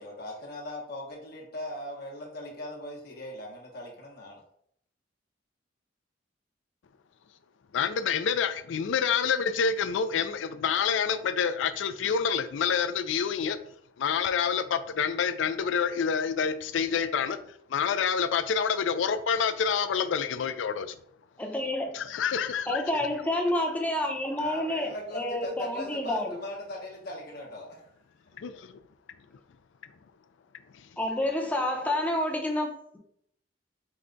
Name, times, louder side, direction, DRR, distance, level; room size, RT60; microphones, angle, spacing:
voice 1, 0.0-4.4 24.4-27.9 28.5-28.6, left 1 dB, 60° left, 0.9 m, -39 dB
voice 2, 7.7-13.6 14.0-17.4 17.7-21.0 21.9-22.8 28.4-28.8 30.7-30.9, left 6 dB, 80° left, 0.4 m, -27 dB
voice 3, 21.4-21.9 22.7-26.4 31.0-33.0, left 1 dB, 10° left, 0.7 m, -29 dB
4.7 x 2.2 x 3.8 m
head